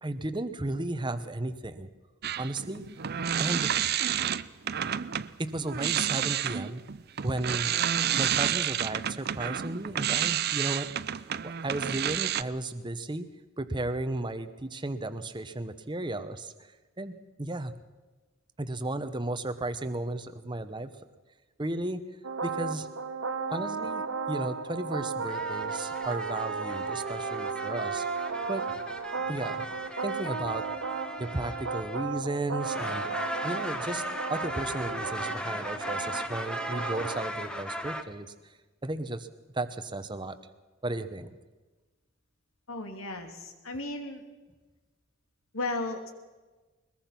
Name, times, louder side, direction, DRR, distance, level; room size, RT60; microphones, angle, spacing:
voice 1, 0.0-1.9 2.4-2.8 3.4-3.7 5.4-6.8 7.2-7.7 8.2-10.9 11.2-16.5 17.0-17.7 18.6-20.9 21.6-22.0 22.4-22.9 23.5-28.0 28.5-28.6 29.3-29.6 30.0-30.7 31.2-33.1 33.4-34.0 34.3-38.5 38.8-39.3 39.5-40.4 40.8-41.3, right 2 dB, 20° right, 10 dB, 0.9 m, -34 dB
sound 1, 2.2-5.3 5.7-12.4, right 9 dB, 50° right, 0.6 m, -29 dB
sound 2, 22.2-37.2, right 5 dB, 75° right, 1.2 m, -35 dB
sound 3, 25.3-32.2 32.6-38.0, equal, 5° left, 1.2 m, -37 dB
voice 2, 42.7-44.2 45.5-46.1, left 2 dB, 85° left, 5 dB, 2.9 m, -35 dB
21.5 x 21.0 x 5.9 m, 1.2 s
head